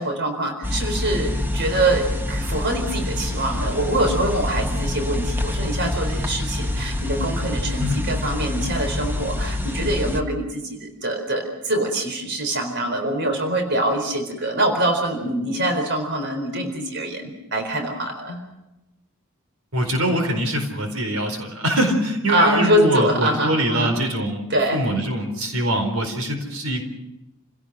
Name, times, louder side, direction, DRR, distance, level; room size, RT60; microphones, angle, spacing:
voice 1, 0.0-18.4 22.3-24.0 24.5-24.8, right 1 dB, 55° right, 5 dB, 4.2 m, -24 dB
sound 1, 0.6-10.2, left 1 dB, 10° right, 1.4 m, -26 dB
voice 2, 7.8-8.2 19.7-26.8, equal, 85° right, 5 dB, 4.5 m, -23 dB
30.0 x 17.5 x 6.3 m, 0.93 s
head